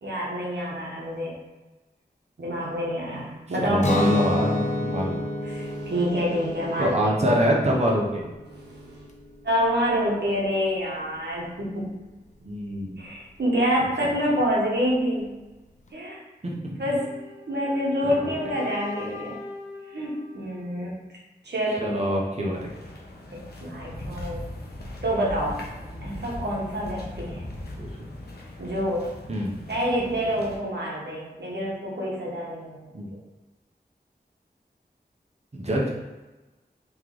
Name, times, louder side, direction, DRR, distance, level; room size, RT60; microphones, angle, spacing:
voice 1, 0.0-1.4 2.4-3.9 5.4-7.1 8.5-9.0 9.4-11.9 13.0-15.4 15.9-16.2 16.8-17.2 17.5-19.4 19.9-21.0 21.4-21.9 23.3-24.5 25.0-25.6 26.0-27.5 28.6-29.1 29.7-32.8, equal, 85° right, -4 dB, 1.0 m, -27 dB
voice 2, 3.6-5.2 6.8-8.3 12.4-13.0 16.4-16.8 21.8-22.7 27.7-28.1 29.3-29.5 32.9-33.1 35.5-35.9, equal, 40° right, -3 dB, 0.9 m, -25 dB
Guitar, 3.8-9.6, left 1 dB, 45° left, 0.6 m, -29 dB
sound 1, 16.9-20.9, left 3 dB, 20° right, 1.0 m, -41 dB
sound 2, 22.5-30.6, left 1 dB, 70° left, 0.9 m, -39 dB
3.2 x 3.1 x 3.8 m, 1.1 s
wide cardioid pair, 45°, 17 cm